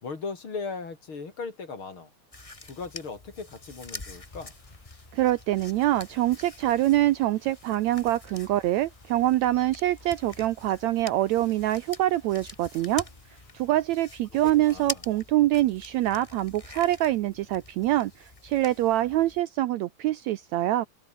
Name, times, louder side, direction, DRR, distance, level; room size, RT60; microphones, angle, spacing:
voice 1, 0.0-2.1 2.6-4.5 14.3-15.0, left 4 dB, 40° left, 3.7 m, -38 dB
sound 1, 2.3-19.4, left 2 dB, 15° left, 1.3 m, -45 dB
sound 2, 4.1-13.7, left 3 dB, 70° left, 9.5 m, -62 dB
voice 2, 5.1-13.1 13.5-20.9, right 14 dB, 75° right, 1.8 m, -25 dB
omnidirectional pair, 3.7 m